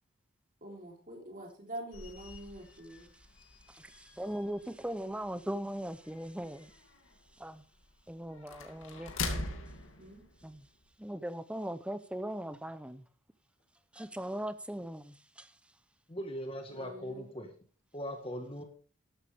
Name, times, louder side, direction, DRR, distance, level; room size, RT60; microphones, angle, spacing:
voice 1, 0.6-3.1 10.0-10.2 16.7-17.3, right 1 dB, 40° right, 3.6 m, -45 dB
sound 1, 1.9-10.9, left 3 dB, 75° left, 2.3 m, -44 dB
voice 2, 2.9-3.3 3.7-6.8 7.4-7.6 8.1-9.1 10.4-10.7 11.0-13.0 13.9-15.5, right 1 dB, 5° right, 0.6 m, -39 dB
voice 3, 16.1-17.5 17.9-18.6, equal, 25° left, 1.5 m, -40 dB
13.5 x 11.5 x 3.5 m
head